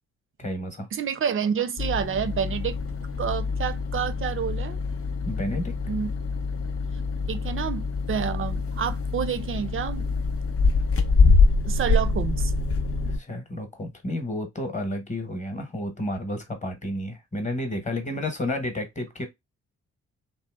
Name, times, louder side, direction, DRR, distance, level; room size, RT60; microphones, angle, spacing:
voice 1, 0.4-0.9 5.3-5.7 13.1-19.3, left 1 dB, 20° left, 1.0 m, -31 dB
voice 2, 0.9-2.8 3.2-4.8 5.9-6.1 7.3-10.1 11.7-12.5, right 7 dB, 35° right, 0.4 m, -29 dB
sound 1, 1.8-13.2, left 4 dB, 40° left, 0.6 m, -25 dB
2.7 x 2.0 x 2.2 m
hypercardioid pair, 45°, 37 cm